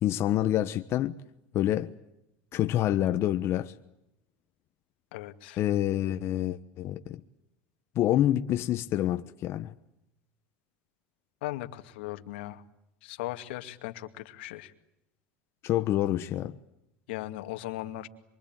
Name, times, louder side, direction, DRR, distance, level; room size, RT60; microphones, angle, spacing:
voice 1, 0.0-1.2 1.5-1.9 2.5-3.7 5.6-7.2 7.9-9.7 15.6-16.5, left 12 dB, 45° left, 1.2 m, -27 dB
voice 2, 5.1-5.6 11.4-12.6 13.0-14.7 17.1-18.1, left 16 dB, 85° left, 2.3 m, -38 dB
26.5 x 24.0 x 9.1 m
supercardioid pair, 125°, 6 cm